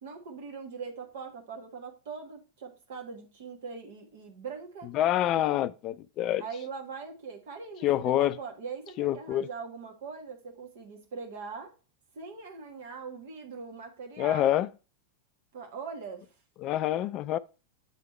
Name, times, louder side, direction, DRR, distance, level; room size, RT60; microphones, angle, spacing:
voice 1, 0.0-4.9 6.4-11.7 12.1-14.5 15.5-16.3, right 5 dB, 55° right, 1.5 m, -41 dB
voice 2, 4.9-6.4 7.8-8.4 9.0-9.5 14.2-14.7 16.6-17.4, left 13 dB, 35° left, 0.3 m, -26 dB
8.4 x 3.5 x 4.3 m
figure-of-eight pair, 90°, 0 cm